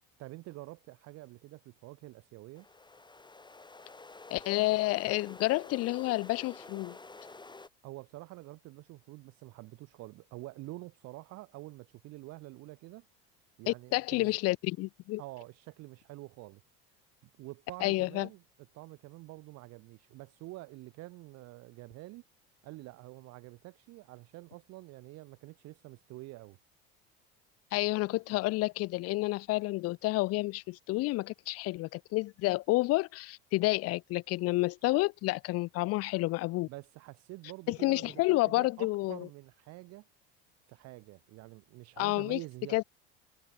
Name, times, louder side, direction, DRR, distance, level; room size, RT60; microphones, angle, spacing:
voice 1, 0.2-2.7 7.8-13.1 13.6-14.4 15.2-16.6 17.4-18.4 18.7-22.2 22.6-26.6 36.7-40.1 40.7-42.8, right 20 dB, 60° right, 0.9 m, -47 dB
sound 1, 2.5-7.7, left 3 dB, 15° left, 5.0 m, -50 dB
voice 2, 4.3-7.0 13.7-15.2 17.8-18.3 27.7-36.7 37.7-39.3 42.0-42.4 42.7-42.8, left 20 dB, 55° left, 0.6 m, -30 dB
supercardioid pair, 85°, 29 cm